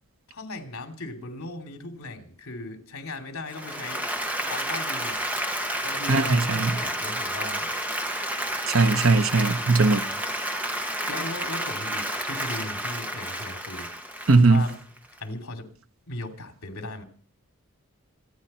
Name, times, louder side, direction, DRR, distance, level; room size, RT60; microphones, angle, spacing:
voice 1, 0.3-4.0 4.5-5.2 5.8-7.7 11.1-13.9 14.3-14.7 15.2-15.7 16.1-17.0, left 2 dB, 75° left, 3.1 m, -37 dB
Applause, 3.5-15.2, right 1 dB, 5° right, 1.1 m, -30 dB
voice 2, 6.1-6.8 8.7-10.0 14.3-14.7, right 3 dB, 65° right, 1.0 m, -19 dB
26.5 x 9.9 x 4.4 m
head